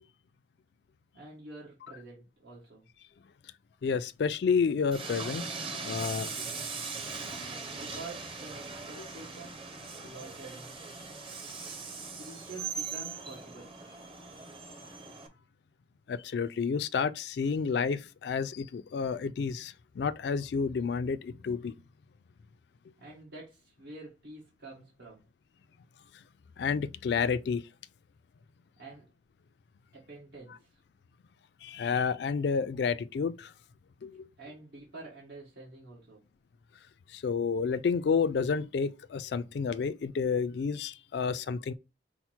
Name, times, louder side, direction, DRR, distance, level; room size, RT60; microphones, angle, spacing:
voice 1, 1.1-2.9 7.8-9.6 10.0-10.7 12.2-13.8 23.0-25.2 28.8-29.0 29.9-30.8 34.4-36.2, right 2 dB, 80° right, 1.6 m, -48 dB
voice 2, 3.8-5.4 5.8-6.3 16.1-21.7 26.6-27.6 31.6-33.5 34.0-34.2 37.1-41.7, left 5 dB, 70° left, 0.3 m, -30 dB
Train, 4.9-15.3, right 5 dB, 30° right, 0.7 m, -40 dB
5.6 x 2.1 x 4.3 m
head